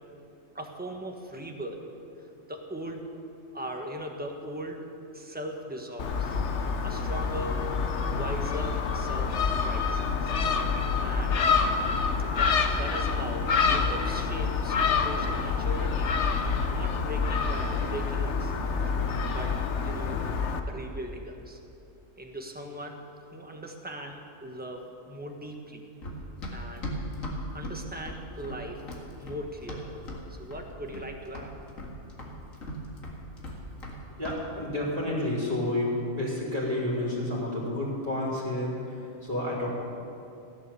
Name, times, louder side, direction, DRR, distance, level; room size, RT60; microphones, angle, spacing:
voice 1, 0.5-1.8 2.5-3.0 3.5-4.9 5.1-6.4 6.8-7.7 8.1-10.3 11.0-11.4 12.3-16.1 16.7-18.5 19.3-19.5 19.8-20.2 20.7-21.6 22.2-23.1 23.3-25.9 26.5-26.8 27.5-28.8 29.2-29.9 30.3-31.5, right 1 dB, 5° right, 2 dB, 1.3 m, -39 dB
Gull seagull, 6.0-20.6, left 5 dB, 65° left, 1.2 m, -27 dB
Run, 26.0-30.2 30.5-31.1 31.3-34.0 34.2-34.4, left 1 dB, 80° left, 2.4 m, -38 dB
voice 2, 34.2-39.7, left 1 dB, 30° right, -7 dB, 3.4 m, -30 dB
16.0 x 10.5 x 7.0 m, 2.6 s
omnidirectional pair, 1.4 m